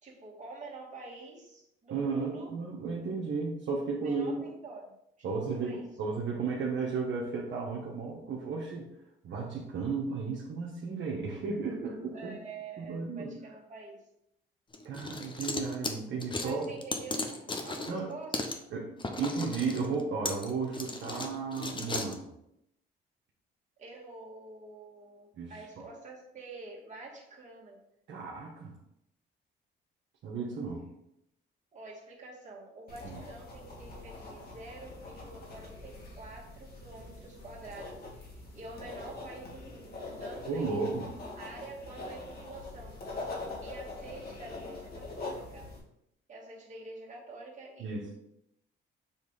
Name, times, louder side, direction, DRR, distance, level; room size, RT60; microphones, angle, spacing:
voice 1, 0.0-2.5 4.0-4.9 5.3-6.0 12.1-14.1 16.4-18.8 23.8-27.8 31.7-40.8 41.3-43.0 43.6-45.7 46.3-48.1, right 3 dB, 35° right, -5 dB, 2.3 m, -47 dB
voice 2, 1.9-4.3 5.2-8.9 9.2-12.3 12.8-13.3 14.8-16.7 17.9-18.1 18.7-18.9 19.2-22.3 25.4-25.8 28.1-28.8 30.2-30.8 33.0-33.2 40.5-41.1 47.8-48.0, right 4 dB, 70° right, -3 dB, 1.2 m, -34 dB
sound 1, 14.7-18.0 18.3-18.6 19.0-22.2, left 3 dB, 25° left, 0.8 m, -36 dB
sound 2, 32.9-45.8, left 2 dB, 50° left, 2.0 m, -43 dB
7.1 x 3.2 x 4.1 m, 0.79 s
cardioid pair, 90°, 20 cm